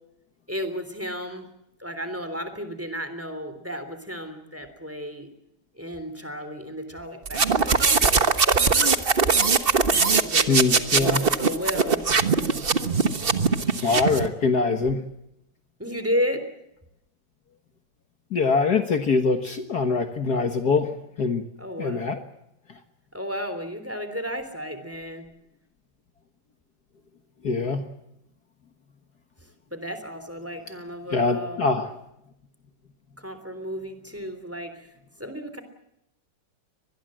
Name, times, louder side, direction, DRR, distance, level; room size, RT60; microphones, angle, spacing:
voice 1, 0.5-1.5 1.8-5.3 5.8-7.8 10.2-12.1 15.8-16.4 21.6-22.1 23.1-25.3 29.4-31.7 33.2-34.9 35.2-35.6, equal, 5° right, 10 dB, 3.2 m, -33 dB
sound 1, 7.3-14.3, right 5 dB, 35° right, 1.2 m, -21 dB
voice 2, 10.5-11.3 13.8-15.0 18.3-21.4 21.8-22.2 27.4-27.9 31.1-31.9, left 4 dB, 55° left, 6 dB, 1.9 m, -23 dB
24.5 x 20.5 x 7.7 m, 0.82 s
omnidirectional pair, 2.2 m